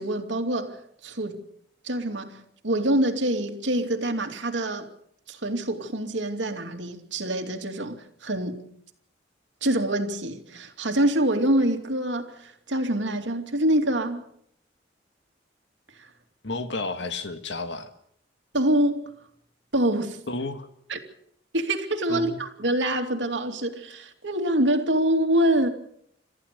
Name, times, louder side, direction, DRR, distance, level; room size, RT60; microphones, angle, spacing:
voice 1, 0.0-1.4 1.8-4.9 5.3-8.7 9.6-14.3 16.0-16.1 18.5-19.1 19.7-20.2 20.9-21.0 21.5-25.7, right 1 dB, 80° right, 2.7 m, -25 dB
voice 2, 16.4-17.9 20.3-20.7 22.1-22.4, left 2 dB, 70° left, 1.9 m, -31 dB
27.0 x 14.5 x 6.8 m
head